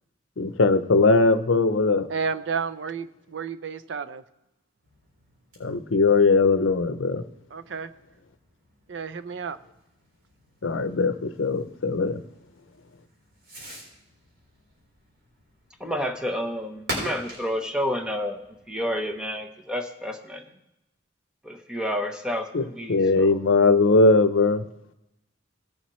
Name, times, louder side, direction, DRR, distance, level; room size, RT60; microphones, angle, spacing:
voice 1, 0.4-2.1 5.6-7.2 10.6-12.2 22.5-22.6 22.9-24.6, left 3 dB, 90° left, 11 dB, 0.6 m, -20 dB
voice 2, 2.1-4.2 7.5-7.9 8.9-9.6, right 5 dB, 70° right, 13 dB, 0.5 m, -31 dB
Fireworks, 4.8-19.4, right 1 dB, 85° right, 4.1 m, -44 dB
voice 3, 15.8-18.4 18.7-20.4 21.4-23.4, equal, 5° right, 4 dB, 0.9 m, -30 dB
18.0 x 7.1 x 3.1 m, 0.91 s
head